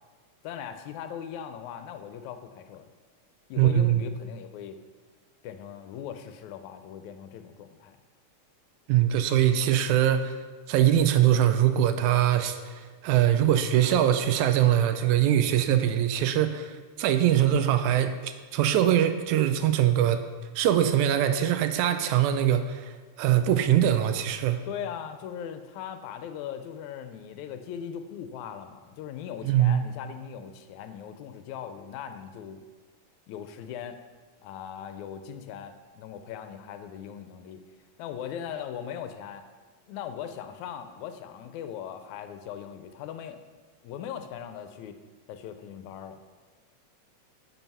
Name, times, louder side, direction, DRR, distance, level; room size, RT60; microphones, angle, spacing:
voice 1, 0.4-2.9 3.5-4.8 5.4-8.0 24.7-32.6 33.3-34.0 34.4-37.6 38.0-39.4 39.9-43.4 43.8-45.0 45.3-46.2, left 8 dB, 90° left, 9 dB, 2.0 m, -39 dB
voice 2, 3.6-4.0 8.9-10.3 10.7-20.2 20.6-24.6 29.4-29.8, right 11 dB, 90° right, 9 dB, 2.0 m, -23 dB
9.3 x 5.8 x 5.6 m, 1.4 s
omnidirectional pair, 3.3 m